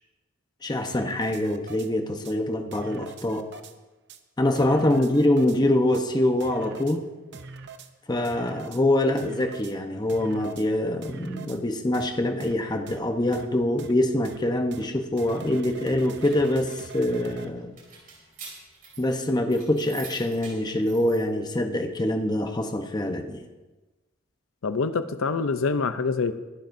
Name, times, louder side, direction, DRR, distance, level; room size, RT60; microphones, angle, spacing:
voice 1, 0.6-3.5 4.4-7.1 8.1-17.7 19.0-23.4, left 1 dB, 20° left, 5 dB, 0.9 m, -24 dB
sound 1, 0.9-1.9 2.2-2.3 2.7-3.7 4.1-4.2 4.6-5.6 5.9-6.0 6.4-7.0 7.3-7.9 8.2-8.8 9.2-9.7 10.1-10.7 11.0-11.6 11.9-12.1 12.4-12.5 12.9-13.0 13.3-13.5 13.8-13.9 14.2-14.4 14.7-14.8 15.2-17.5, right 4 dB, 60° right, 0.8 m, -42 dB
sound 2, 16.2-21.2, right 5 dB, 45° right, 4.3 m, -46 dB
voice 2, 24.6-26.3, left 4 dB, 85° left, 11 dB, 0.6 m, -26 dB
22.5 x 11.5 x 2.7 m, 1.2 s
head